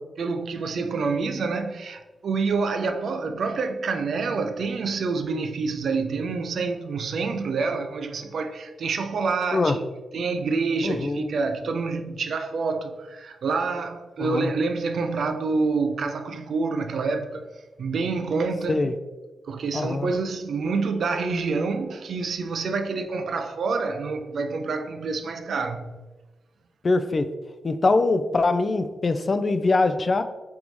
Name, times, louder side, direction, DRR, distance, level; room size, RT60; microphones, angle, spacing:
voice 1, 0.2-9.9 10.1-17.5 17.8-18.9 19.5-26.0, right 4 dB, 70° right, 0.3 m, -27 dB
voice 2, 10.8-11.2 14.2-14.5 18.7-18.9 19.7-20.1 26.8-27.3 27.6-30.2, left 3 dB, 40° left, 0.3 m, -22 dB
3.8 x 3.4 x 3.1 m
cardioid pair, 90°, 0 cm